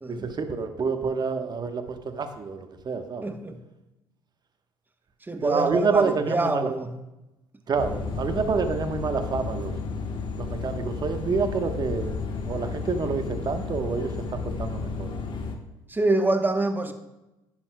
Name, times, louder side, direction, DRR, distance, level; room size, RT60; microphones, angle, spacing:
voice 1, 0.1-3.3 5.4-6.7 7.7-9.7 10.4-12.1 12.4-15.1, right 5 dB, 40° right, 7 dB, 1.1 m, -28 dB
voice 2, 3.2-3.6 5.3-6.9 15.9-16.9, right 2 dB, 15° right, 7 dB, 1.0 m, -25 dB
sound 1, 7.8-15.6, left 4 dB, 50° left, 1.2 m, -32 dB
10.5 x 10.0 x 2.2 m, 0.96 s
hypercardioid pair, 55°, 11 cm